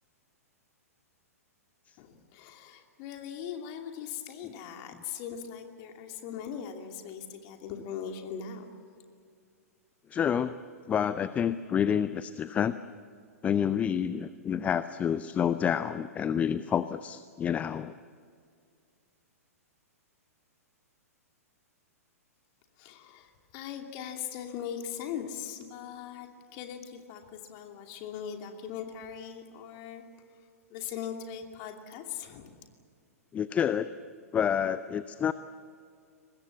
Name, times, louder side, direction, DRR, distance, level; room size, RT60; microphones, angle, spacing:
voice 1, 2.0-8.7 22.8-30.0 30.7-32.6, left 8 dB, 35° left, 4 dB, 2.7 m, -40 dB
voice 2, 10.1-10.6 10.9-12.8 13.4-17.9 33.3-33.9 34.3-35.3, left 8 dB, 15° left, 14 dB, 0.5 m, -28 dB
23.5 x 20.5 x 8.2 m, 2.2 s
figure-of-eight pair, 110°, 8 cm